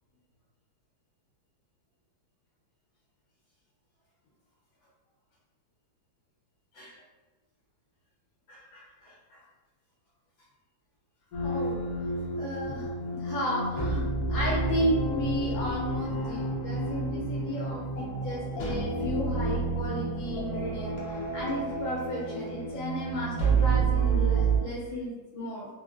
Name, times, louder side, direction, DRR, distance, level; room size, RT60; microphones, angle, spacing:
voice 1, 8.5-9.4 11.4-11.8 12.3-12.9 13.1-21.0 21.3-25.7, equal, 80° left, -5 dB, 1.4 m, -34 dB
sound 1, 11.3-24.6, right 4 dB, 65° left, 0.9 m, -29 dB
3.4 x 2.2 x 2.2 m, 1.2 s
omnidirectional pair, 2.1 m